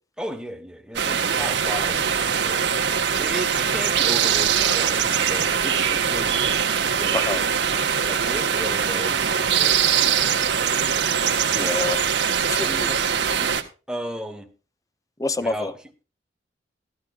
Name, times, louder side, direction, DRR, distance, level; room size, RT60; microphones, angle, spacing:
voice 1, 0.2-2.7 3.2-6.6 6.9-7.3 8.0-10.8 13.4-13.5 13.9-14.5 15.4-15.8, equal, 5° right, 1.3 m, -35 dB
sound 1, 0.9-13.6, right 7 dB, 80° right, 1.4 m, -22 dB
voice 2, 7.1-7.4 11.5-12.0 12.4-13.0 15.2-15.7, left 2 dB, 20° left, 0.6 m, -27 dB
14.0 x 13.0 x 2.5 m
head